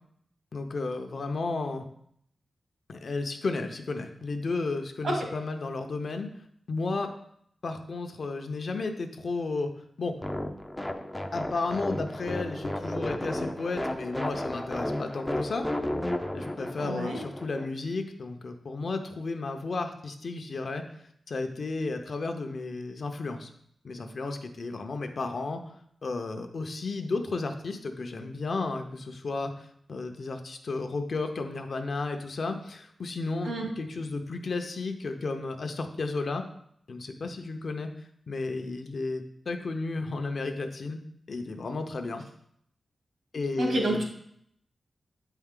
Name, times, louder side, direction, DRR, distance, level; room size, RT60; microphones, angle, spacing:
voice 1, 0.5-1.8 2.9-6.3 6.7-7.1 7.6-9.7 10.0-10.2 11.3-15.7 16.3-20.8 21.3-23.5 23.8-25.6 26.0-36.4 36.9-37.9 38.3-41.0 41.3-42.2 43.3-44.0, left 3 dB, 50° left, 5 dB, 0.7 m, -33 dB
sound 1, 10.2-17.7, left 1 dB, 10° left, 0.4 m, -33 dB
voice 2, 16.8-17.2 33.4-33.6 43.6-44.0, right 1 dB, 80° right, -1 dB, 2.1 m, -28 dB
8.5 x 4.5 x 3.7 m, 0.69 s
wide cardioid pair, 165°, 0 cm